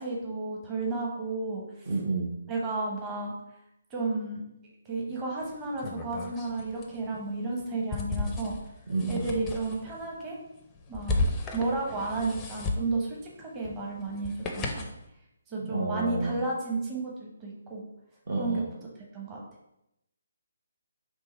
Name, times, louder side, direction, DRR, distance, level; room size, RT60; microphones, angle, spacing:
voice 1, 0.0-1.6 2.5-3.3 3.9-4.4 4.9-8.6 9.1-10.4 10.9-11.2 11.5-14.8 15.5-17.8 18.4-18.7 19.1-19.4, right 3 dB, 15° right, -3 dB, 0.9 m, -32 dB
voice 2, 1.9-2.4 8.9-9.3 15.7-16.3 18.3-18.6, right 3 dB, 50° right, 0 dB, 0.8 m, -30 dB
sound 1, 5.4-15.0, left 2 dB, 15° left, 0.5 m, -35 dB
3.7 x 3.0 x 4.4 m, 0.84 s
figure-of-eight pair, 140°, 0 cm